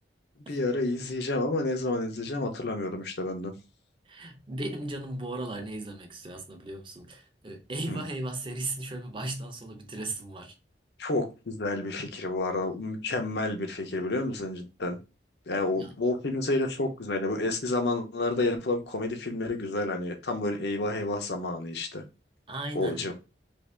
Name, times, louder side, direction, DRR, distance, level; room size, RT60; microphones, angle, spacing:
voice 1, 0.5-3.5 7.9-8.0 11.0-15.0 15.5-22.0 22.7-23.1, left 2 dB, 70° left, 0.7 m, -30 dB
voice 2, 4.1-10.5 15.6-15.9 22.5-23.1, right 2 dB, 30° right, 0.6 m, -36 dB
2.9 x 2.7 x 3.3 m
head